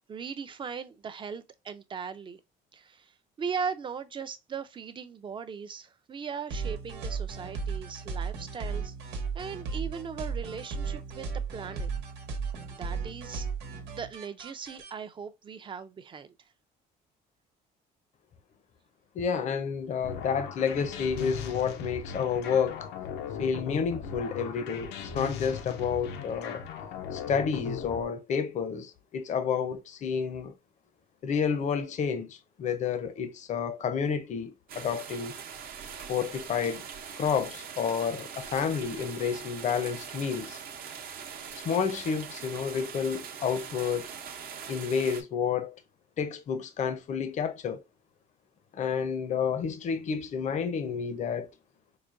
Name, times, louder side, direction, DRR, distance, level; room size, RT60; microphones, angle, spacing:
voice 1, 0.1-2.4 2.7-11.9 12.7-13.5 13.9-16.3, right 6 dB, 30° right, 0.5 m, -39 dB
sound 1, 6.5-14.9, right 5 dB, 85° right, 1.0 m, -35 dB
voice 2, 19.1-22.9 23.4-26.6 27.1-30.5 31.2-35.4 36.1-36.8 37.1-40.6 41.5-44.1 44.7-45.8 46.2-47.8 48.7-51.5, left 6 dB, 45° left, 0.6 m, -30 dB
sound 2, 20.0-28.0, left 7 dB, 85° left, 0.7 m, -38 dB
sound 3, 34.7-45.2, right 7 dB, 60° right, 0.8 m, -42 dB
4.8 x 2.2 x 2.5 m
cardioid pair, 110°, 17 cm